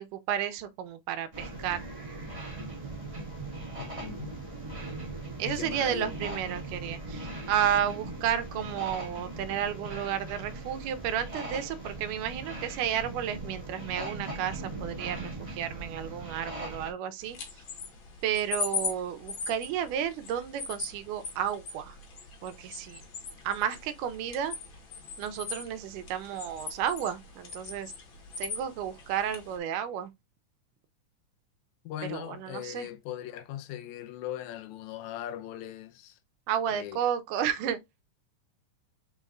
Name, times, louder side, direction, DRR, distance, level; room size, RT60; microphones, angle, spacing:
voice 1, 0.0-1.9 5.4-17.4 18.2-22.0 22.4-23.0 23.4-24.5 25.2-27.9 28.4-30.1 32.1-32.9 36.5-38.0, right 9 dB, 85° right, 2.2 m, -32 dB
sound 1, 1.3-16.9, right 2 dB, 25° right, 0.7 m, -39 dB
voice 2, 3.8-4.3 5.4-6.1 31.9-36.2 36.7-37.0, left 12 dB, 75° left, 1.9 m, -39 dB
sound 2, 17.2-29.6, left 4 dB, 50° left, 1.6 m, -40 dB
5.1 x 4.2 x 2.4 m
omnidirectional pair, 3.6 m